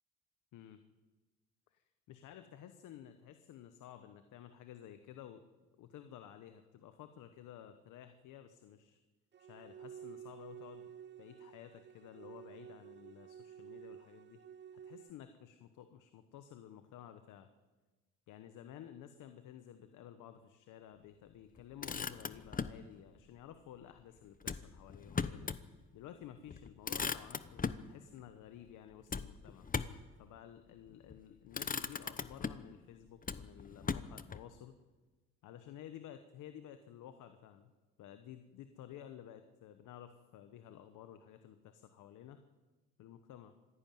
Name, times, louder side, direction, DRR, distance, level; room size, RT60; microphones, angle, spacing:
voice 1, 2.1-5.4 5.8-9.0 9.4-10.9 11.2-14.4 14.8-17.5 18.3-25.5 25.9-29.7 30.2-34.8 35.4-37.7 38.0-42.4 43.0-43.5, left 10 dB, 90° left, 9 dB, 1.2 m, -53 dB
sound 1, 9.3-15.1, right 9 dB, 35° right, 0.6 m, -52 dB
Motor vehicle (road), 21.6-22.8 24.4-25.7 26.1-26.2 26.5-27.9 29.1-30.1 30.9-31.2 31.5-32.7 33.2-34.4, left 5 dB, 30° left, 0.9 m, -39 dB
26.0 x 11.0 x 9.2 m, 1.2 s
cardioid pair, 90°, 30 cm